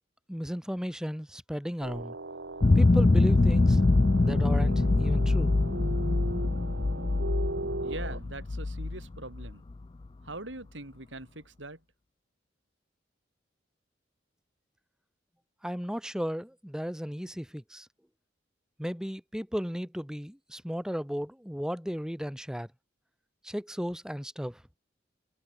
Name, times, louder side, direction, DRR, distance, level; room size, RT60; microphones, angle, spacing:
voice 1, 0.3-2.1 2.8-3.8 4.2-5.6 15.6-17.9 18.8-22.7 23.4-24.6, equal, 5° right, 2.4 m, -35 dB
sound 1, 1.8-8.2, right 2 dB, 70° right, 1.5 m, -38 dB
sound 2, 2.6-9.7, left 2 dB, 30° left, 0.4 m, -24 dB
voice 2, 7.8-9.6 10.2-11.8, right 2 dB, 90° right, 5.9 m, -42 dB
head